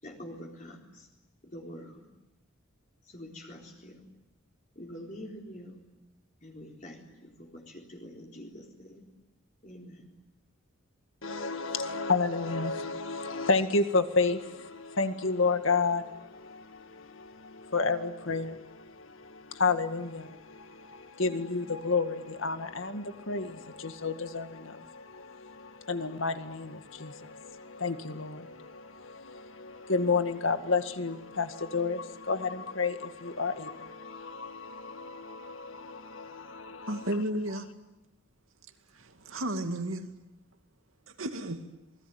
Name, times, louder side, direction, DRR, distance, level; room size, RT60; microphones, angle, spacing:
voice 1, 0.0-1.1 1.4-2.1 3.1-4.0 4.8-5.8 6.4-9.0 9.6-10.1, equal, 40° left, 4.1 m, -46 dB
voice 2, 11.2-37.1, left 4 dB, 70° left, 1.9 m, -31 dB
voice 3, 36.9-37.7 38.9-40.1 41.2-41.6, right 1 dB, 75° right, 2.5 m, -33 dB
27.5 x 21.0 x 9.4 m
head